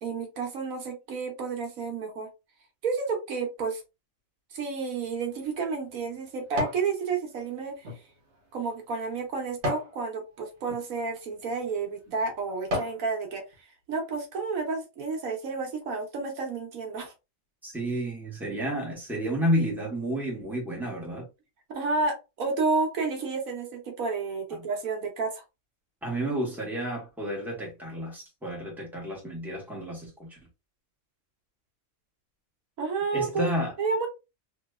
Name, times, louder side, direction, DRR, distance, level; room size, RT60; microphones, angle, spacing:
voice 1, 0.0-2.3 2.8-3.8 4.5-7.8 8.5-13.4 13.9-17.1 21.7-25.4 32.8-33.4 33.8-34.1, right 4 dB, 90° right, 1.4 m, -31 dB
sound 1, 5.0-6.9 7.4-10.0 10.6-10.8 11.5-11.7 12.2-13.0 13.5-13.6, left 1 dB, 55° right, 1.3 m, -35 dB
voice 2, 17.6-21.3 26.0-30.4 33.1-33.7, equal, ahead, 1.2 m, -31 dB
3.2 x 2.9 x 2.3 m
omnidirectional pair, 1.4 m